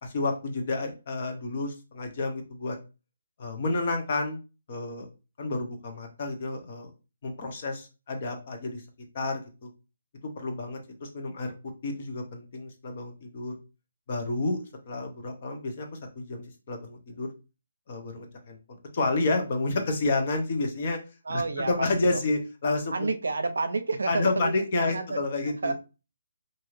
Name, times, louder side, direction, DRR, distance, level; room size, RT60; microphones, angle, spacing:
voice 1, 0.0-2.8 3.4-4.4 4.7-5.1 5.4-6.9 7.2-8.8 9.1-9.7 10.4-11.5 11.8-13.6 14.1-17.3 17.9-21.0 21.3-23.1 24.1-25.7, left 2 dB, 40° left, 4 dB, 0.7 m, -30 dB
voice 2, 21.3-22.2 22.9-25.7, right 3 dB, 85° right, 9 dB, 0.5 m, -30 dB
2.6 x 2.4 x 3.1 m, 0.31 s
hypercardioid pair, 165°, 0 cm